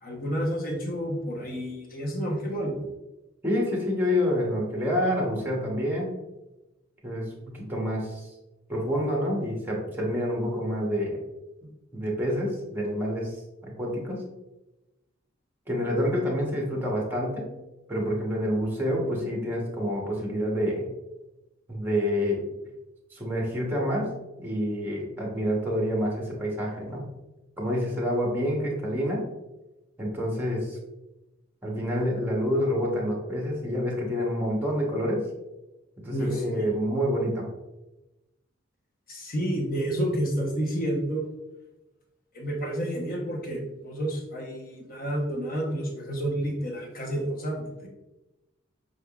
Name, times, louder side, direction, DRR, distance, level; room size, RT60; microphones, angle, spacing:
voice 1, 0.0-2.9 16.1-16.2 25.3-25.4 36.1-36.8 39.1-41.2 42.3-47.9, right 1 dB, 45° left, 0 dB, 1.0 m, -30 dB
voice 2, 3.4-6.1 7.0-8.3 8.7-11.2 11.9-13.4 13.6-14.2 15.7-17.5 17.9-20.9 21.7-22.5 23.1-24.1 24.4-27.1 27.6-29.2 30.0-30.8 31.6-35.2 36.0-37.4, equal, 10° right, -2 dB, 1.0 m, -27 dB
5.2 x 3.5 x 2.4 m, 1.0 s
head